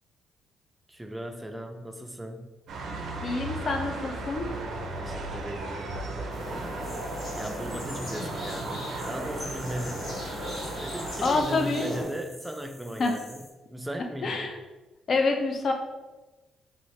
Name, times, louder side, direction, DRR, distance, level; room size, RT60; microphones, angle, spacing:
voice 1, 0.9-2.5 5.0-6.4 7.3-10.1 10.8-14.5, right 1 dB, 10° right, 5 dB, 0.4 m, -37 dB
sound 1, 2.7-11.4, right 2 dB, 70° right, 0.5 m, -36 dB
voice 2, 3.2-4.5 11.2-11.9 13.0-13.1 14.2-14.6 15.1-15.7, left 3 dB, 50° left, 3 dB, 0.5 m, -27 dB
sound 2, 6.3-12.0, left 1 dB, 70° left, 1.4 m, -38 dB
sound 3, 6.8-13.5, left 1 dB, 25° left, 1.1 m, -49 dB
2.7 x 2.7 x 3.1 m, 1.2 s
cardioid pair, 90°, 0 cm